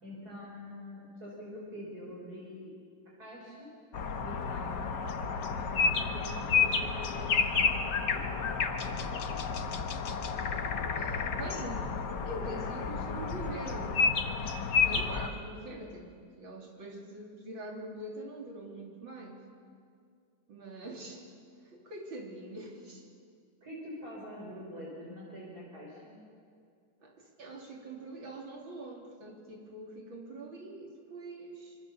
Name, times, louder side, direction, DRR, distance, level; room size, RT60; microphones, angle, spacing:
voice 1, 0.0-2.7 3.2-3.7 4.2-9.2 23.6-26.2, equal, 50° right, -4 dB, 5.2 m, -46 dB
sound 1, 3.9-15.3, left 5 dB, 65° left, 1.8 m, -31 dB
voice 2, 11.0-11.9 12.3-14.0 14.8-19.4 20.5-21.3 21.6-23.1 27.0-31.8, right 2 dB, 80° right, 0 dB, 3.9 m, -44 dB
25.0 x 24.5 x 7.0 m, 2.2 s
omnidirectional pair, 2.1 m